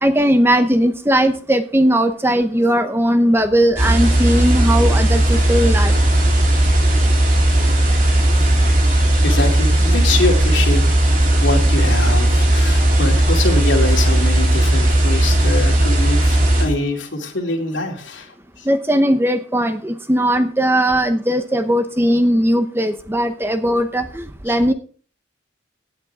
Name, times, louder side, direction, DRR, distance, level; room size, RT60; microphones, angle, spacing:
voice 1, 0.0-5.9 18.7-24.7, equal, 10° right, 9 dB, 0.8 m, -18 dB
sound 1, 3.8-16.6, right 1 dB, 45° right, 3.3 m, -15 dB
voice 2, 8.9-10.9 11.2-18.3 24.5-24.6, left 2 dB, 80° left, 2 dB, 2.8 m, -24 dB
17.0 x 8.9 x 3.5 m, 0.41 s
head